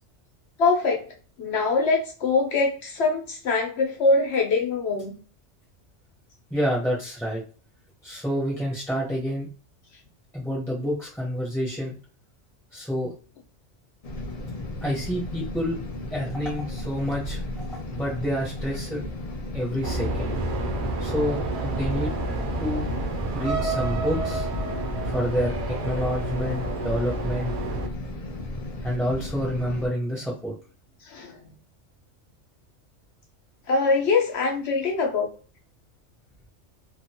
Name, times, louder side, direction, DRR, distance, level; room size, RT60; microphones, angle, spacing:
voice 1, 0.6-1.0 1.4-5.2 31.1-31.4 33.7-35.3, left 3 dB, 65° left, 1 dB, 1.1 m, -23 dB
voice 2, 6.5-7.4 8.0-9.5 10.3-11.9 12.7-13.1 14.8-15.8 16.1-19.1 19.5-20.3 21.0-22.1 22.6-23.0 23.3-24.5 25.0-27.5 28.8-30.5, equal, ahead, -5 dB, 0.7 m, -28 dB
sound 1, 14.0-29.9, left 2 dB, 45° left, 0.5 m, -35 dB
sound 2, 19.8-27.9, right 2 dB, 55° right, 0.6 m, -29 dB
2.9 x 2.5 x 2.8 m, 0.39 s
omnidirectional pair, 1.2 m